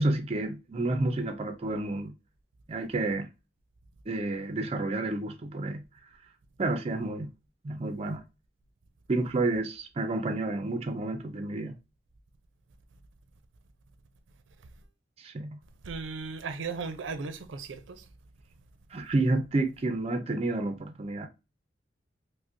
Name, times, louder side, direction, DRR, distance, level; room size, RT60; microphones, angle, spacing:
voice 1, 0.0-2.1 2.7-3.3 4.1-5.8 6.6-7.3 7.6-8.2 9.1-11.7 15.2-15.6 18.9-21.3, right 2 dB, 35° right, 0.4 m, -30 dB
voice 2, 15.8-18.0, right 4 dB, 90° right, 0.5 m, -36 dB
5.0 x 2.1 x 2.5 m
head